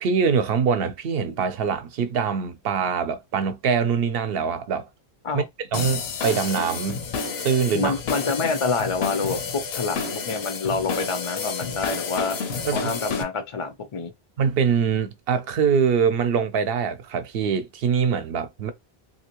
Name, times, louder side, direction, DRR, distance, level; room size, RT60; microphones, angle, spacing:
voice 1, 0.0-4.9 5.3-7.0 7.4-7.9 12.7-12.9 14.4-18.7, right 6 dB, 65° right, 0.8 m, -23 dB
sound 1, 5.7-13.2, left 5 dB, 75° left, 0.9 m, -30 dB
voice 2, 7.7-9.4 9.7-12.4 12.7-14.1, left 4 dB, 45° left, 0.4 m, -27 dB
3.3 x 2.7 x 2.9 m
omnidirectional pair, 1.1 m